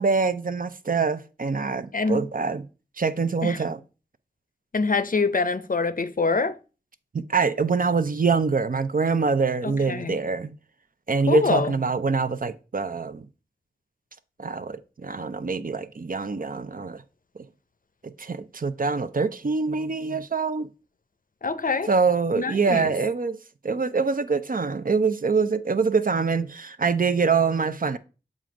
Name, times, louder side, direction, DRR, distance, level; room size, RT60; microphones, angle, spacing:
voice 1, 0.0-2.7 3.0-3.8 7.1-10.5 11.1-13.3 14.4-17.0 18.0-20.7 21.9-23.4 23.6-28.0, right 4 dB, 55° right, 0.5 m, -24 dB
voice 2, 4.7-6.6 9.6-10.2 11.3-11.7 21.4-21.9 22.3-22.9, left 4 dB, 50° left, 0.6 m, -25 dB
7.4 x 2.5 x 5.1 m
wide cardioid pair, 45°, 17 cm